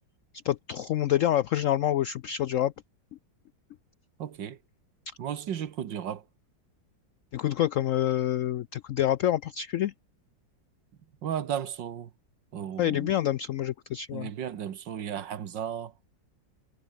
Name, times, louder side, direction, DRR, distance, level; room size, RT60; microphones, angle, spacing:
voice 1, 0.4-2.7 5.1-5.2 7.3-9.9 12.8-14.3, left 12 dB, 85° left, 0.7 m, -27 dB
voice 2, 4.2-4.6 5.2-6.2 11.2-12.1 12.5-13.1 14.1-15.9, right 9 dB, 90° right, 2.0 m, -34 dB
omnidirectional pair, 1.9 m